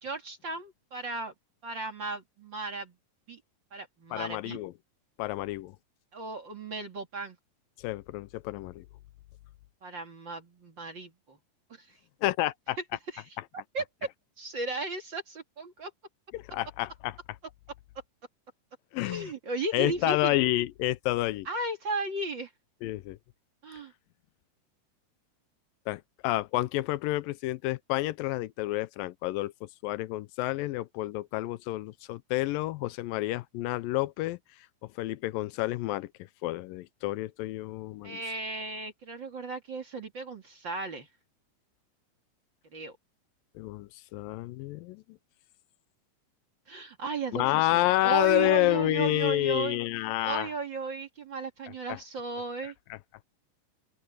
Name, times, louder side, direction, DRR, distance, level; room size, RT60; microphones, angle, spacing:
voice 1, 0.0-1.3 1.6-2.9 3.3-3.4 3.7-4.6 6.1-7.4 9.8-11.4 11.7-11.9 13.1-13.2 13.5-13.8 14.4-15.9 19.0-20.4 21.5-22.5 23.6-23.9 38.0-41.1 42.7-43.0 46.7-49.8 50.2-52.7, right 3 dB, 40° right, 2.4 m, -35 dB
voice 2, 4.1-4.7 5.2-5.8 7.8-8.8 12.2-12.8 16.3-17.2 18.9-19.3 19.7-21.5 22.8-23.2 25.9-34.4 35.0-36.1 36.4-38.2 43.6-45.0 47.3-50.5 51.9-52.0 52.6-53.0, left 17 dB, 85° left, 2.3 m, -29 dB
open air
omnidirectional pair, 4.0 m